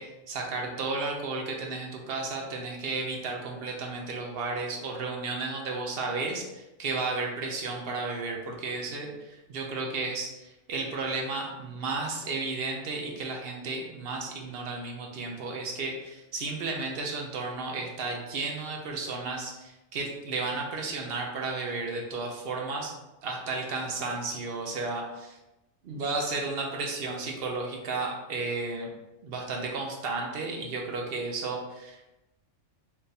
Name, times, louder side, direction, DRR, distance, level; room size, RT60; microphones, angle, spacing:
voice 1, 0.0-23.0 23.2-25.4 25.8-28.9 29.2-32.1, right 3 dB, 60° right, 1 dB, 0.7 m, -33 dB
3.7 x 2.5 x 2.7 m, 0.98 s
omnidirectional pair, 1.3 m